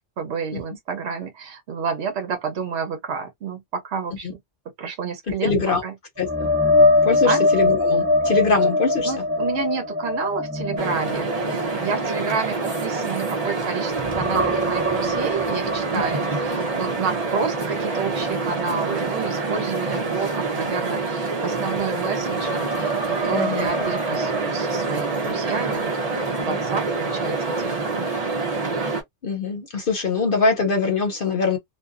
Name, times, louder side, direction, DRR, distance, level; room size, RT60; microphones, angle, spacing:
voice 1, 0.0-4.4 4.8-5.5 5.8-6.0 7.2-7.4 9.0-25.9 26.4-28.1, right 6 dB, 70° right, 1.0 m, -30 dB
voice 2, 5.4-5.8 6.2-6.5 7.0-9.1 23.3-23.7 26.5-26.6 29.2-31.6, left 4 dB, 55° left, 0.8 m, -23 dB
sound 1, 6.2-13.6 13.9-17.8 18.2-18.4 21.8-21.9, left 2 dB, 20° right, 0.4 m, -23 dB
sound 2, 10.8-29.0, right 3 dB, 40° right, 0.8 m, -26 dB
2.5 x 2.2 x 2.4 m
omnidirectional pair, 1.2 m